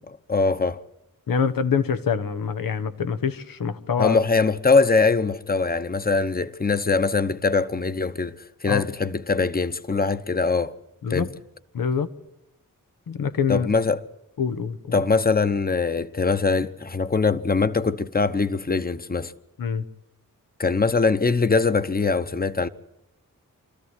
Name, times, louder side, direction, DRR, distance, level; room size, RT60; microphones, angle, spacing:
voice 1, 0.3-0.8 4.0-10.7 11.1-11.3 13.5-14.0 14.9-19.3 20.6-22.7, left 4 dB, 25° left, 1.0 m, -22 dB
voice 2, 1.3-4.2 8.7-8.8 11.0-11.3 11.7-12.1 13.1-13.7 14.4-15.0 19.6-19.8, left 6 dB, 90° left, 1.2 m, -25 dB
26.0 x 14.0 x 9.7 m
cardioid pair, 60°, 33 cm